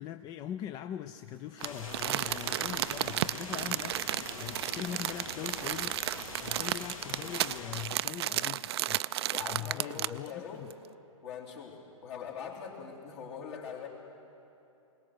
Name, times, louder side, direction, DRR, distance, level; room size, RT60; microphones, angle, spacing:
voice 1, 0.0-9.0 9.5-10.7, left 11 dB, 20° left, 10 dB, 0.4 m, -41 dB
sound 1, 1.6-7.9, left 3 dB, 70° left, 2.5 m, -43 dB
Crumpling crinkling, 1.6-10.3 10.7-10.8, right 14 dB, 50° right, 0.4 m, -33 dB
voice 2, 9.3-10.6 11.2-13.9, left 7 dB, 55° left, -2 dB, 3.5 m, -42 dB
22.0 x 18.5 x 6.5 m, 2.8 s
figure-of-eight pair, 115°, 17 cm